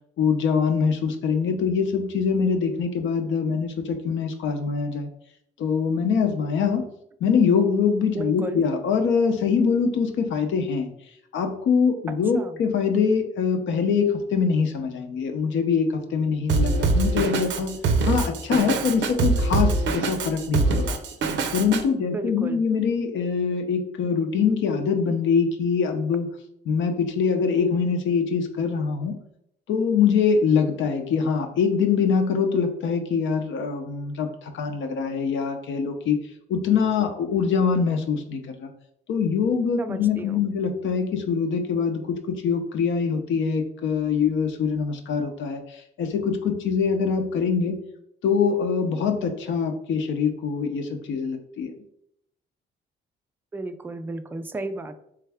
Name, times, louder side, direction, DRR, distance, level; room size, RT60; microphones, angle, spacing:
voice 1, 0.2-5.1 5.6-6.9 7.2-10.9 11.3-21.0 21.5-26.3 26.7-29.2 29.7-36.2 36.5-38.7 39.1-47.8 48.2-51.7, left 6 dB, 70° left, 5 dB, 0.7 m, -24 dB
voice 2, 8.1-8.6 12.3-12.6 22.0-22.7 39.8-40.5 53.5-55.0, right 2 dB, 10° right, 8 dB, 0.3 m, -33 dB
Drum kit, 16.5-21.8, right 3 dB, 70° right, 0.5 m, -23 dB
3.6 x 3.3 x 3.4 m, 0.75 s
cardioid pair, 90°, 20 cm